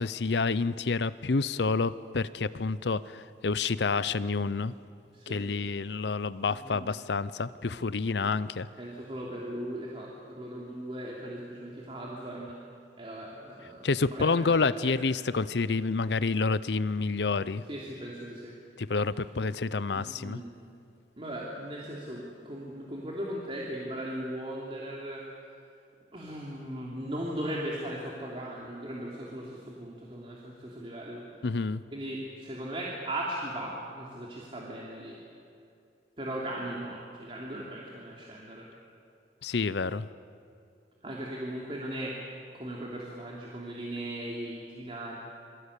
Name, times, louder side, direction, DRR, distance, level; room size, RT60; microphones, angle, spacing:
voice 1, 0.0-4.8 5.3-8.7 13.8-17.6 18.8-20.4 31.4-31.8 39.4-40.1, left 4 dB, 75° left, 16 dB, 0.6 m, -28 dB
voice 2, 5.1-5.5 6.4-6.9 8.2-8.4 8.8-12.6 13.0-14.9 17.7-18.6 19.9-20.5 21.2-25.3 26.1-31.2 31.9-35.2 36.2-38.7 41.0-45.2, right 1 dB, 30° right, -3 dB, 3.1 m, -38 dB
28.0 x 22.5 x 8.3 m, 2.5 s
head